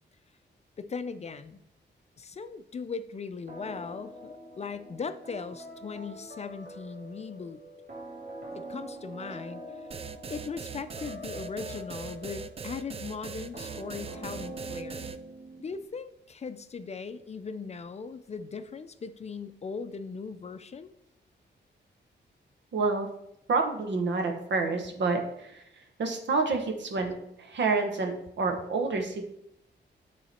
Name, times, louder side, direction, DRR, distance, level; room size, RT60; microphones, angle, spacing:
voice 1, 0.8-1.6 2.2-7.6 8.5-9.6 10.3-15.1 15.6-20.9, left 5 dB, 35° left, 11 dB, 0.4 m, -39 dB
sound 1, 3.5-15.9, equal, 55° right, 2.3 m, -44 dB
sound 2, 9.9-15.2, right 6 dB, 30° right, 0.4 m, -40 dB
voice 2, 22.7-23.1 23.5-25.6 26.0-29.2, right 3 dB, 75° right, 4 dB, 1.3 m, -28 dB
10.0 x 3.9 x 4.3 m, 0.76 s
wide cardioid pair, 125°, 19 cm